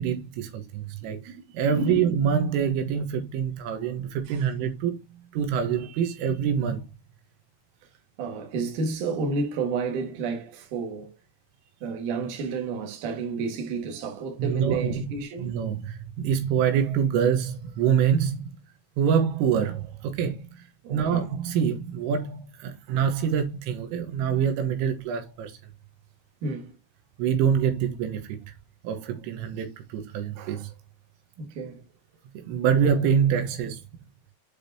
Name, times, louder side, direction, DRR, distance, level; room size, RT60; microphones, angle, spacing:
voice 1, 0.0-5.0 5.3-6.9 14.4-18.4 19.0-20.7 20.9-25.5 27.2-28.4 28.8-30.7 32.4-33.8, right 8 dB, 85° right, 3.9 m, -25 dB
voice 2, 1.0-1.4 1.7-2.1 4.3-4.5 8.2-11.1 11.8-15.5 20.8-21.2 26.4-26.8 31.4-31.8, right 4 dB, 55° right, 2.6 m, -31 dB
8.5 x 5.1 x 2.8 m
omnidirectional pair, 5.6 m